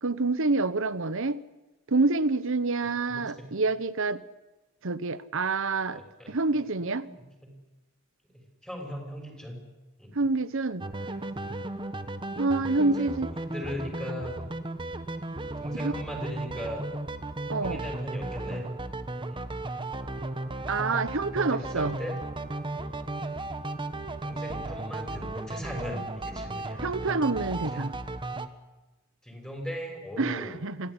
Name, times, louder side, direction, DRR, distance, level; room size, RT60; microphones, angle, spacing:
voice 1, 0.0-1.4 1.9-4.2 4.8-6.0 6.3-7.1 10.1-10.9 12.4-13.3 15.7-15.9 17.5-17.8 20.7-22.0 26.8-27.9 30.2-30.9, right 3 dB, 65° right, 15 dB, 1.1 m, -27 dB
voice 2, 3.1-3.5 5.9-6.3 7.0-7.5 8.3-9.6 10.0-10.1 12.8-13.1 13.4-14.4 15.6-16.9 17.6-18.6 19.3-19.5 21.5-22.2 24.2-26.8 27.5-27.9 29.2-30.6, equal, 5° left, 2 dB, 6.3 m, -39 dB
sound 1, 10.8-28.5, right 2 dB, 25° right, 1.2 m, -35 dB
26.5 x 16.0 x 10.0 m, 1.1 s
head